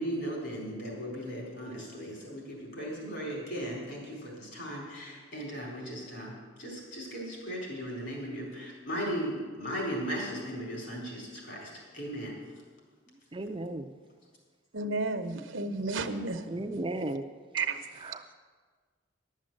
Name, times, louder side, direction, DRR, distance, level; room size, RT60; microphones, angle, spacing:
voice 1, 0.0-12.4, equal, 60° left, -3 dB, 4.4 m, -37 dB
voice 2, 13.3-13.9 16.5-17.2 18.0-18.2, right 2 dB, 25° right, 6 dB, 0.5 m, -35 dB
voice 3, 14.7-16.4 17.5-17.8, right 3 dB, 70° right, 7 dB, 0.9 m, -32 dB
12.0 x 7.4 x 7.6 m, 1.5 s
head